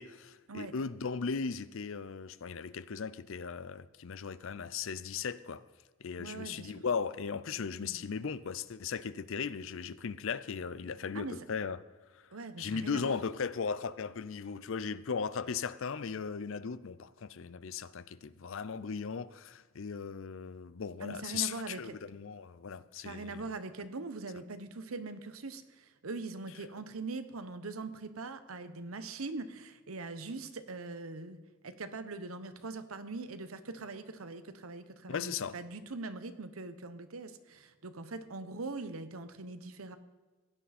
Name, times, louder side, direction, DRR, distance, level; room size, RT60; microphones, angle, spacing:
voice 1, 0.0-5.6 6.0-11.8 12.1-12.2 12.6-23.4 35.1-35.6, left 6 dB, 65° left, 0.5 m, -37 dB
voice 2, 6.2-6.8 7.8-8.0 11.1-11.4 12.3-13.2 21.0-22.0 23.0-40.0, right 3 dB, 80° right, 0.9 m, -42 dB
16.0 x 10.0 x 4.2 m
head